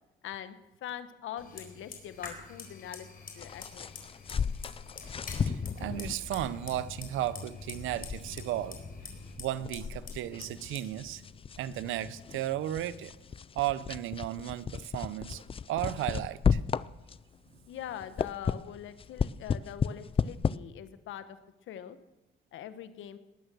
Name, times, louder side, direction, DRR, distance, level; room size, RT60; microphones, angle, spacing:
voice 1, 0.2-0.5 0.8-3.1 3.3-3.9 17.7-21.4 21.7-22.0 22.5-23.2, left 10 dB, 80° left, 12 dB, 1.1 m, -42 dB
Fire, 1.4-13.2, left 4 dB, 50° left, 4.0 m, -46 dB
sound 1, 3.4-17.4 17.8-20.6, left 6 dB, 30° left, 0.4 m, -34 dB
voice 2, 5.5-8.8 9.4-11.2 11.6-13.1 13.5-15.4 15.7-16.6, right 13 dB, 90° right, 16 dB, 0.7 m, -34 dB
20.0 x 9.1 x 6.3 m, 1.0 s
cardioid pair, 90°, 20 cm